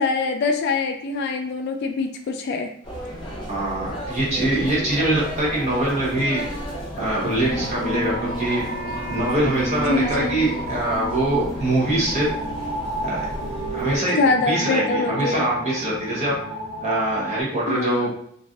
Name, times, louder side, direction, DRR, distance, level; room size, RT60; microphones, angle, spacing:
voice 1, 0.0-2.7 9.9-10.4 14.2-15.5 17.7-18.1, left 3 dB, 55° left, 5 dB, 0.3 m, -24 dB
sound 1, 2.8-14.0, right 1 dB, 25° left, 0.8 m, -33 dB
voice 2, 3.5-6.4 7.0-8.6 9.1-12.3 13.0-13.3 13.7-14.2 14.5-16.3 16.8-18.1, right 1 dB, 35° right, -5 dB, 0.9 m, -23 dB
sound 2, 7.4-17.4, equal, 65° right, 1.2 m, -31 dB
Wind instrument woodwind instrument, 7.4-11.5, right 3 dB, 85° right, 0.5 m, -39 dB
3.1 x 2.5 x 2.4 m, 0.66 s
head